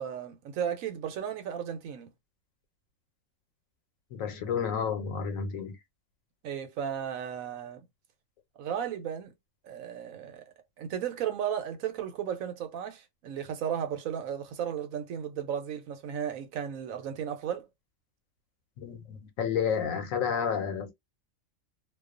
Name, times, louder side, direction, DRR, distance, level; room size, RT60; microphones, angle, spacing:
voice 1, 0.0-2.1 6.4-7.8 8.6-9.3 9.6-10.4 10.8-17.7, right 9 dB, 90° right, 1.1 m, -34 dB
voice 2, 4.1-5.8 18.8-20.9, left 7 dB, 80° left, 1.1 m, -31 dB
2.4 x 2.3 x 2.4 m
omnidirectional pair, 1.4 m